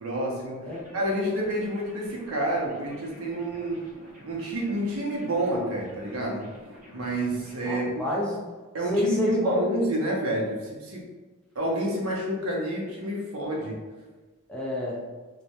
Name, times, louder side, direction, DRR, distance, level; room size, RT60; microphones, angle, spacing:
voice 1, 0.0-0.7 0.9-3.8 4.2-6.5 6.9-7.9 8.7-11.1 11.6-13.8, right 1 dB, 80° right, -2 dB, 0.6 m, -28 dB
sound 1, 0.7-7.8, equal, 40° right, 0.6 m, -49 dB
voice 2, 7.6-8.4 8.9-9.6 14.5-15.0, left 1 dB, 5° left, -5 dB, 0.4 m, -28 dB
2.2 x 2.1 x 2.8 m, 1.3 s
head